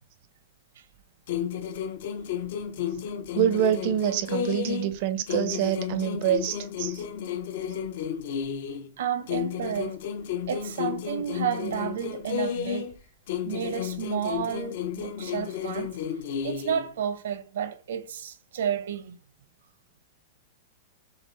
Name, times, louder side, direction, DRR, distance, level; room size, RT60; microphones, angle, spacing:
sound 1, 1.3-5.0 5.3-8.9 9.3-13.0 13.3-16.9, left 8 dB, 50° left, 0.6 m, -32 dB
voice 1, 3.3-7.0, right 10 dB, 35° right, 0.5 m, -26 dB
voice 2, 9.0-10.0 10.5-12.9 13.4-16.0 16.4-19.2, right 8 dB, 70° right, 0.8 m, -31 dB
6.6 x 2.4 x 3.2 m
supercardioid pair, 180°, 0 cm